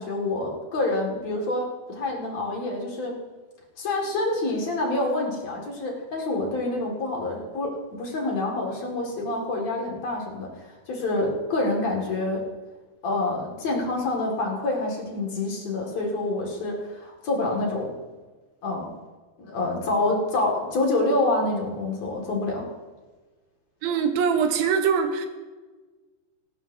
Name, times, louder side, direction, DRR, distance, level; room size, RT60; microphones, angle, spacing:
voice 1, 0.0-3.2 3.8-10.5 10.9-12.4 13.0-17.9 18.6-18.9 19.4-22.7, left 2 dB, 50° left, -1 dB, 2.9 m, -27 dB
voice 2, 23.8-25.3, right 6 dB, 80° right, 6 dB, 2.8 m, -23 dB
18.0 x 16.0 x 2.7 m, 1.3 s
omnidirectional pair, 4.2 m